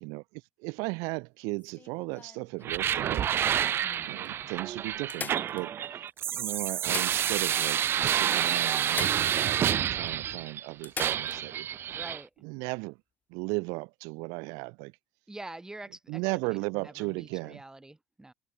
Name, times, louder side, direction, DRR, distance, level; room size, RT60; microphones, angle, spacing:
voice 1, 0.0-3.3 4.1-5.8 6.3-11.7 12.4-13.0 13.3-14.9 16.1-17.6, right 30 dB, 75° right, 0.9 m, -36 dB
sound 1, 1.6-3.2 3.9-4.0 4.2-4.3 5.1-6.1 6.7-7.7 7.9-8.0 8.9-9.7 10.1-10.2 10.8-11.4 13.4-13.5, left 6 dB, 30° left, 2.0 m, -41 dB
sound 2, 2.6-10.6 11.0-12.2, right 10 dB, 45° right, 0.4 m, -29 dB
voice 2, 11.9-12.3 15.3-16.2 16.5-18.3, right 2 dB, 10° right, 1.9 m, -45 dB
supercardioid pair, 75°, 6 cm